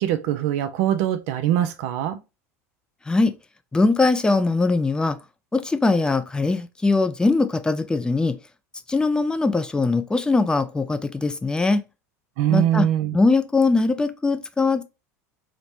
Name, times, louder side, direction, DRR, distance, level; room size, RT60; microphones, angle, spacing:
voice 1, 0.0-2.2 12.4-13.2, right 11 dB, 65° right, 0.4 m, -22 dB
voice 2, 3.7-5.2 5.5-8.4 8.9-11.8 12.5-12.9 13.1-14.8, left 3 dB, 10° left, 0.3 m, -21 dB
3.1 x 2.0 x 2.7 m
hypercardioid pair, 80°, 8 cm